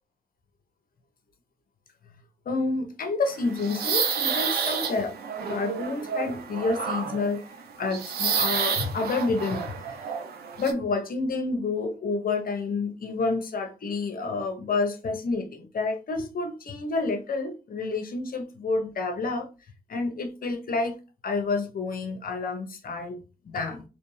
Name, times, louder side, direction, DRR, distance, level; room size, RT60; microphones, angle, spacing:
voice 1, 2.4-5.1 5.5-7.4 7.8-10.2 10.6-19.5 19.9-20.9 21.2-23.8, left 3 dB, 65° left, 1.0 m, -29 dB
sound 1, 3.3-10.7, right 6 dB, 90° right, 0.6 m, -30 dB
3.3 x 3.0 x 3.2 m
cardioid pair, 50°, 16 cm